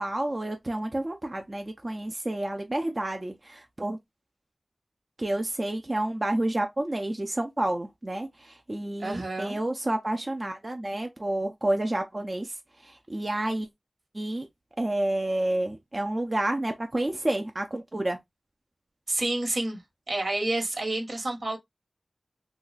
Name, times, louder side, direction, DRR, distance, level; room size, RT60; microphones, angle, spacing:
voice 1, 0.0-4.0 5.2-12.6 12.8-13.7 14.1-14.5 14.8-18.2, right 1 dB, 40° right, 0.6 m, -29 dB
voice 2, 9.0-9.6 19.1-19.8 20.1-21.6, right 2 dB, 80° right, 1.3 m, -29 dB
2.8 x 2.3 x 4.0 m
wide cardioid pair, 40°, 0 cm